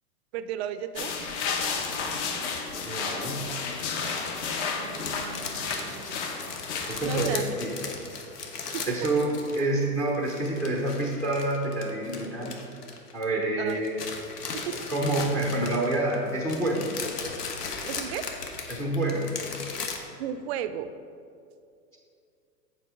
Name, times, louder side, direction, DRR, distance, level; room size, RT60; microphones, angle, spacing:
voice 1, 0.3-1.3 4.7-6.2 7.0-7.4 8.7-9.1 13.6-13.8 14.5-14.8 17.9-18.3 20.2-20.9, right 10 dB, 45° right, 11 dB, 0.5 m, -35 dB
sound 1, 1.0-7.3, left 5 dB, 45° left, 1.0 m, -32 dB
sound 2, 1.1-9.8 10.1-13.4 13.7-20.0, left 4 dB, 80° left, 1.2 m, -38 dB
voice 2, 2.8-3.5 6.9-7.9 8.9-12.6 13.1-14.0 14.9-16.9 18.7-19.3, right 1 dB, 5° left, 0 dB, 0.5 m, -27 dB
7.8 x 4.7 x 4.9 m, 2.5 s
hypercardioid pair, 115°, 46 cm